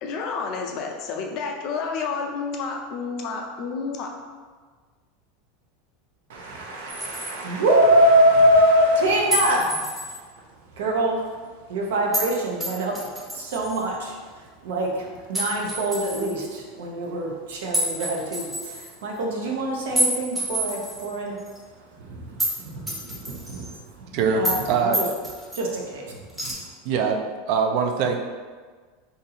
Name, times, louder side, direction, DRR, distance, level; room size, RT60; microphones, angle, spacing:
voice 1, 0.0-4.1, left 5 dB, 45° left, 2 dB, 0.5 m, -30 dB
voice 2, 6.3-10.1 10.8-11.2 11.7-12.9 13.3-21.4 21.9-25.1 25.5-26.5, right 1 dB, 85° right, -1 dB, 0.7 m, -24 dB
sound 1, 6.9-7.4 9.3-10.2 12.1-12.3 12.6-13.8 15.3-16.3 17.7-18.9 19.9-21.1 21.5-21.6 22.4-22.6 22.9-23.7 24.4-24.7 24.9-25.6 26.3-26.5, equal, 5° right, 0.7 m, -28 dB
voice 3, 24.1-25.0 26.8-28.2, right 5 dB, 55° right, 4 dB, 0.4 m, -23 dB
2.7 x 2.6 x 4.1 m, 1.5 s
supercardioid pair, 140°, 0 cm